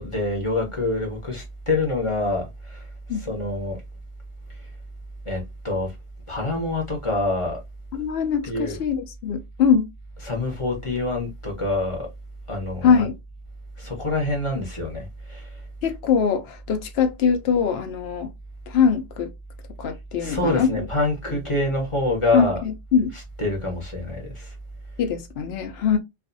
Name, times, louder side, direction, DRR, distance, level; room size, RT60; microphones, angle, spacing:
voice 1, 0.0-3.8 5.2-5.9 6.3-7.6 8.4-8.8 10.2-12.1 12.5-13.0 13.8-15.6 20.2-22.6 23.1-24.5, left 2 dB, 30° left, 0.8 m, -26 dB
voice 2, 7.9-9.9 12.8-13.1 15.8-18.3 18.7-19.3 19.8-20.9 22.3-23.1 25.0-26.0, left 6 dB, 70° left, 0.8 m, -22 dB
2.5 x 2.3 x 2.5 m
omnidirectional pair, 1.1 m